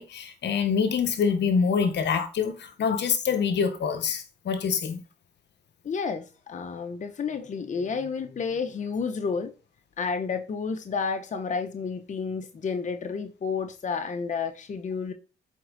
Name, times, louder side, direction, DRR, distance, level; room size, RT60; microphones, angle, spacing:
voice 1, 0.0-5.0, left 6 dB, 60° left, 1.2 m, -25 dB
voice 2, 5.8-9.5 10.0-15.1, left 5 dB, 40° left, 0.9 m, -31 dB
7.7 x 4.4 x 4.0 m
cardioid pair, 90°, 20 cm